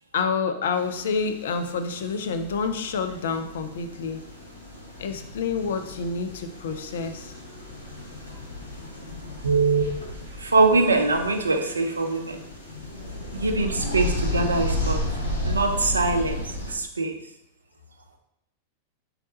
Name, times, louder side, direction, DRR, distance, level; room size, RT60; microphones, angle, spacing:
voice 1, 0.1-4.2 5.0-7.3, left 5 dB, 60° left, 8 dB, 0.4 m, -28 dB
sound 1, 0.8-16.7, left 1 dB, 85° left, 0.8 m, -33 dB
voice 2, 9.4-9.8 10.4-12.4 13.3-15.0 15.4-16.4 16.7-17.1, right 3 dB, 75° right, 5 dB, 0.4 m, -22 dB
4.0 x 3.3 x 2.8 m, 0.81 s
figure-of-eight pair, 90°, 0 cm